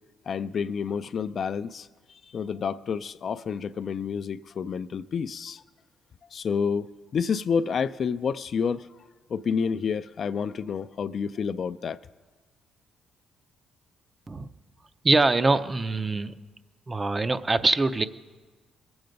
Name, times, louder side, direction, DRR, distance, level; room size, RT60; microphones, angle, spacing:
voice 1, 0.3-5.6 6.3-8.9 9.3-12.0, left 6 dB, 55° left, 13 dB, 0.3 m, -29 dB
voice 2, 15.0-16.4 16.9-18.1, right 3 dB, 25° right, 12 dB, 0.5 m, -23 dB
20.5 x 7.9 x 5.2 m, 1.4 s
cardioid pair, 90°, 0 cm